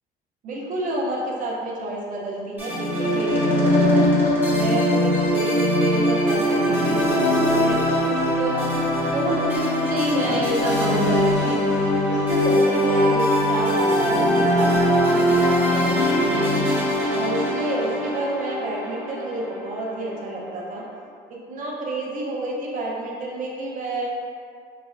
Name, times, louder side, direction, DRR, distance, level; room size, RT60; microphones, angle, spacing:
voice 1, 0.4-4.1 4.5-8.1 8.4-8.7 9.1-11.6 12.0-16.6 17.1-20.8 21.3-24.1, right 1 dB, 50° right, -3 dB, 0.6 m, -29 dB
sound 1, 2.6-20.0, equal, 10° right, 0.8 m, -21 dB
sound 2, 12.9-17.5, equal, 15° left, 0.5 m, -32 dB
3.3 x 2.1 x 2.3 m, 2.1 s
cardioid pair, 110°, 17 cm